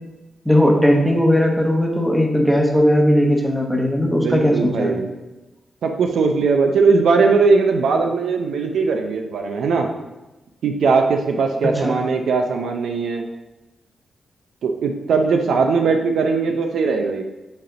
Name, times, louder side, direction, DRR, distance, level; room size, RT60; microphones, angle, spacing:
voice 1, 0.4-5.0 11.8-12.0, equal, 5° right, 0 dB, 1.0 m, -17 dB
voice 2, 4.0-5.1 5.8-9.9 10.6-13.2 14.6-17.2, right 4 dB, 80° right, 4 dB, 0.6 m, -19 dB
8.1 x 3.4 x 3.9 m, 1.1 s
wide cardioid pair, 130°, 0 cm